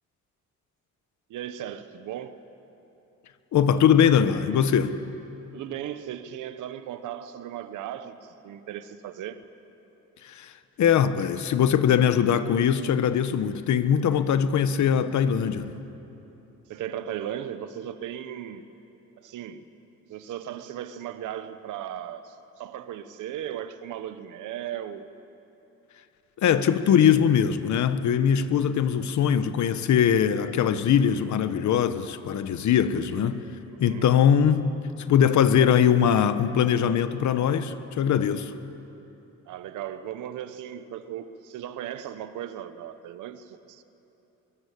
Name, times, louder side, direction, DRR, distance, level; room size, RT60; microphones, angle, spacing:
voice 1, 1.3-2.4 5.5-9.4 16.7-18.7 19.2-19.6 20.1-25.1 33.7-34.1 39.5-43.8, right 10 dB, 85° right, 1.3 m, -37 dB
voice 2, 3.5-5.0 10.2-10.5 10.8-15.7 26.4-33.4 33.8-34.7 35.0-38.5, left 8 dB, 70° left, 1.3 m, -21 dB
24.0 x 23.0 x 8.5 m
cardioid pair, 90°, 30 cm